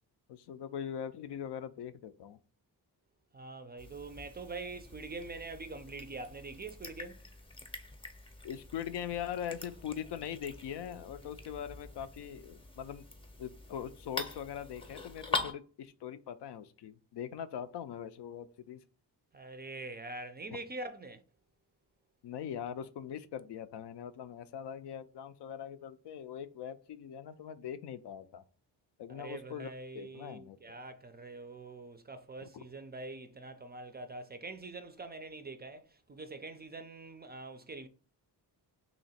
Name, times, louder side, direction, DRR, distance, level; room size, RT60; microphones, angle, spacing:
voice 1, 0.3-2.4 8.4-13.1 13.4-18.8 22.2-28.4 29.0-30.8 32.4-32.6, left 9 dB, 75° left, 0.5 m, -41 dB
voice 2, 3.3-7.3 19.3-21.2 29.1-37.9, right 3 dB, 25° right, 0.4 m, -44 dB
sound 1, 3.8-15.5, left 3 dB, 15° left, 0.6 m, -44 dB
2.9 x 2.8 x 4.1 m
cardioid pair, 95°, 42 cm